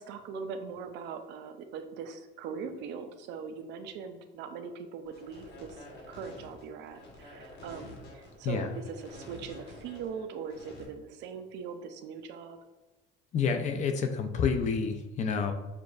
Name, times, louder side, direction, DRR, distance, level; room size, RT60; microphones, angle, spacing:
voice 1, 0.0-12.6, right 6 dB, 60° right, 7 dB, 0.5 m, -41 dB
sound 1, 5.1-10.8, left 1 dB, 55° left, 1.3 m, -49 dB
voice 2, 13.3-15.5, left 5 dB, 35° left, 6 dB, 0.4 m, -29 dB
6.7 x 2.5 x 2.3 m, 1.1 s
cardioid pair, 150°, 20 cm